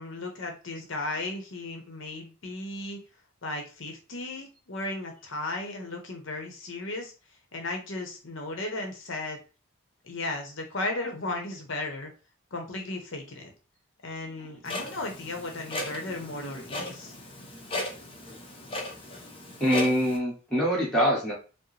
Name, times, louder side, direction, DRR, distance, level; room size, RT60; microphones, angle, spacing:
voice 1, 0.0-3.0 3.4-7.1 7.5-9.4 10.0-12.1 12.5-13.5 14.0-17.1, left 2 dB, 60° left, 3 dB, 0.8 m, -35 dB
Clock, 14.6-20.2, left 1 dB, 25° left, 0.6 m, -37 dB
voice 2, 19.6-21.3, equal, 5° left, -5 dB, 1.2 m, -24 dB
4.7 x 2.0 x 3.2 m, 0.34 s
head